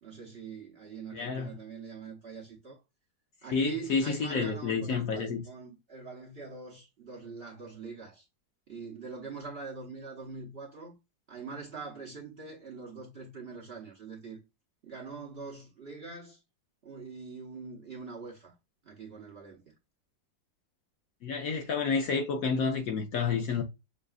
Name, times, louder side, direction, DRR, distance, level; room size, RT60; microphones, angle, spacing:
voice 1, 0.0-2.8 3.4-8.2 8.7-11.0 11.3-14.4 14.8-16.4 16.8-18.5 18.8-19.7, right 4 dB, 45° right, 0.9 m, -43 dB
voice 2, 1.1-1.5 3.5-5.4 21.2-23.6, left 5 dB, 65° left, 0.9 m, -29 dB
6.3 x 2.4 x 2.3 m
omnidirectional pair, 2.0 m